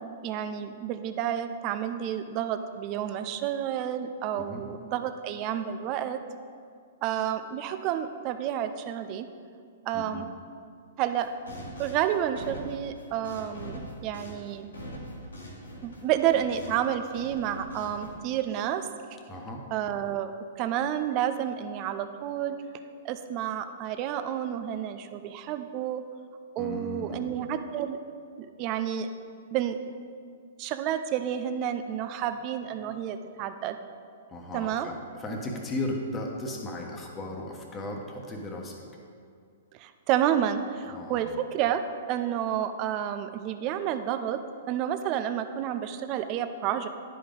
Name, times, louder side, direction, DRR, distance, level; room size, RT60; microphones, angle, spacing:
voice 1, 0.0-6.2 7.0-9.3 9.9-10.3 11.0-11.3 11.8-14.7 15.8-18.9 19.7-20.3 20.6-22.6 23.0-26.0 26.6-28.0 28.4-29.1 29.5-29.8 30.6-33.8 34.5-34.9 39.7-41.8 42.1-44.4 44.7-46.9, right 10 dB, 40° right, 9 dB, 0.5 m, -30 dB
voice 2, 9.9-10.3 19.3-19.6 26.6-27.3 34.3-38.8 40.9-41.3, left 2 dB, 20° left, 1 dB, 1.2 m, -36 dB
sound 1, 11.1-16.9 17.1-18.1, equal, 80° left, 1.6 m, -42 dB
10.5 x 5.1 x 3.8 m, 2.3 s
hypercardioid pair, 115°, 0 cm